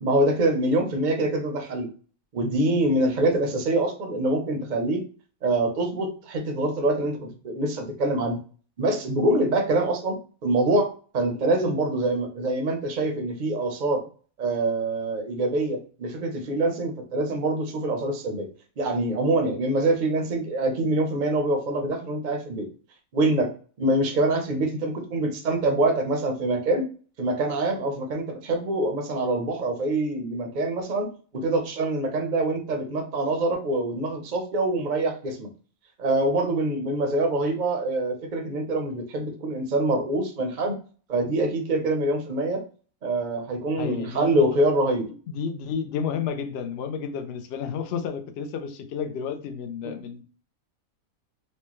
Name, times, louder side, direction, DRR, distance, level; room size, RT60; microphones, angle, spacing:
voice 1, 0.0-1.9 2.3-5.0 5.4-8.4 8.8-14.0 14.4-18.5 18.8-22.7 23.1-23.5 23.8-26.9 27.2-31.1 31.3-35.5 36.0-40.7 41.1-42.6 43.0-45.1 49.8-49.9, right 2 dB, 45° right, 4 dB, 0.6 m, -25 dB
voice 2, 43.8-44.5 45.3-50.2, left 7 dB, 65° left, 7 dB, 0.6 m, -31 dB
4.4 x 2.2 x 3.0 m, 0.39 s
omnidirectional pair, 1.5 m